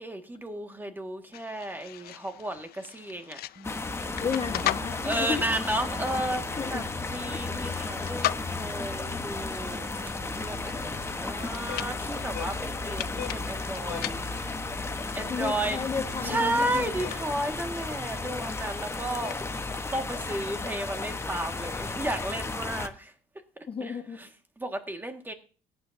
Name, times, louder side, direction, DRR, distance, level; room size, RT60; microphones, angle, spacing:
voice 1, 0.0-3.4 5.0-9.9 10.3-14.2 15.1-15.8 16.2-19.4 19.9-23.1 23.8-24.3 24.6-25.3, right 1 dB, 10° right, 1.7 m, -33 dB
sound 1, 1.3-19.7, left 15 dB, 65° left, 0.4 m, -40 dB
sound 2, 3.6-22.9, left 3 dB, 15° left, 1.0 m, -34 dB
sound 3, 3.6-17.1, right 2 dB, 25° right, 1.7 m, -47 dB
voice 2, 4.2-5.4 6.6-6.9 15.3-17.0 23.7-24.2, left 6 dB, 35° left, 1.3 m, -33 dB
17.0 x 10.0 x 2.7 m
cardioid pair, 110°, 17 cm